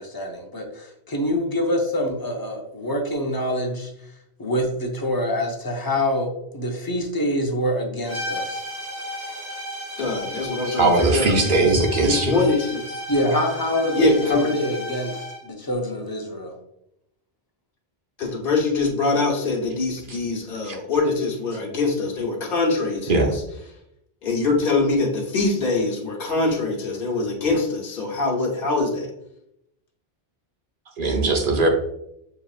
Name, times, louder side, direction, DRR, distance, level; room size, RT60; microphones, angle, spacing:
voice 1, 0.0-3.9 4.4-8.6 13.1-16.6, left 1 dB, 25° left, 2 dB, 0.6 m, -25 dB
sound 1, 8.1-15.5, equal, 40° right, 1.3 m, -34 dB
voice 2, 10.0-13.0 14.0-14.6 18.2-23.4 24.2-29.1, left 3 dB, 60° left, -2 dB, 1.2 m, -23 dB
voice 3, 10.8-12.4 20.1-20.2 23.1-23.3 31.0-31.7, right 3 dB, 55° right, 2 dB, 0.9 m, -19 dB
6.7 x 2.8 x 2.4 m, 0.79 s
omnidirectional pair, 1.1 m